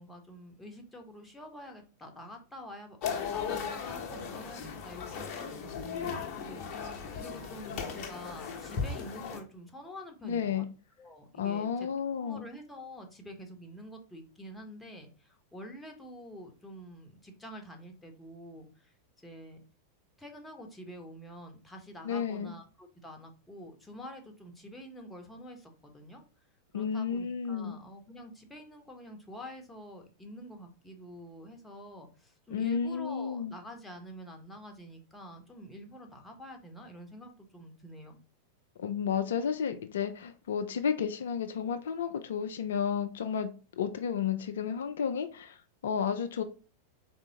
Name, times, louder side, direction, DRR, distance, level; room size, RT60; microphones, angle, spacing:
voice 1, 0.0-3.0 3.3-10.7 11.0-18.9 19.2-19.6 20.2-26.2 26.7-38.2, equal, 5° left, 3 dB, 1.0 m, -47 dB
sound 1, 3.0-9.4, left 6 dB, 40° left, 0.9 m, -37 dB
voice 2, 10.2-10.7 11.3-12.5 22.0-22.5 26.7-27.8 32.5-33.5 38.8-43.5 43.8-46.4, left 7 dB, 60° left, 8 dB, 0.4 m, -32 dB
4.1 x 3.4 x 2.8 m, 0.35 s
figure-of-eight pair, 90°, 0 cm